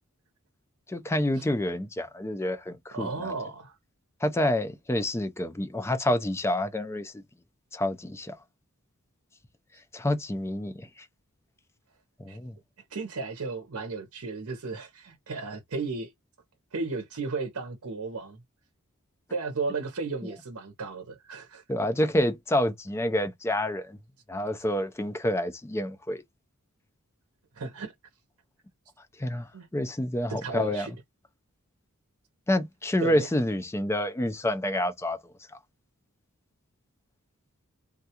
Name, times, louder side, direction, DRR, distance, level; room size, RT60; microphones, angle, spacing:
voice 1, 0.9-3.3 4.2-7.1 7.7-8.4 9.9-10.9 12.2-12.5 21.7-24.0 24.3-26.2 29.2-30.9 32.5-35.2, left 1 dB, 10° left, 0.4 m, -28 dB
voice 2, 2.9-3.8 12.3-12.4 12.9-16.1 16.7-18.4 19.3-21.6 27.5-27.9 29.5-29.7 30.3-30.9 33.0-33.3, right 4 dB, 70° right, 0.7 m, -34 dB
3.5 x 2.3 x 2.8 m
head